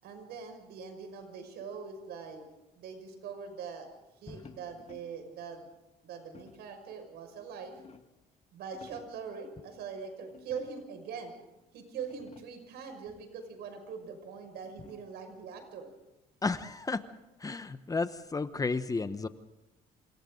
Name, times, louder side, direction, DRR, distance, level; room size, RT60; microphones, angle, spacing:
voice 1, 0.0-2.4 2.8-3.9 4.2-5.6 6.0-7.8 8.5-11.3 11.7-15.9, right 6 dB, 75° right, 6 dB, 6.0 m, -42 dB
sound 1, 4.5-5.3 6.3-6.8 7.4-8.3 8.6-9.3 10.3-11.0 11.6-11.7 12.0-12.7 14.1-15.2, left 6 dB, 40° left, 1.7 m, -56 dB
voice 2, 16.4-17.0 17.4-19.3, left 3 dB, 20° left, 11 dB, 1.0 m, -32 dB
28.5 x 27.0 x 3.9 m, 0.98 s
cardioid pair, 110°, 17 cm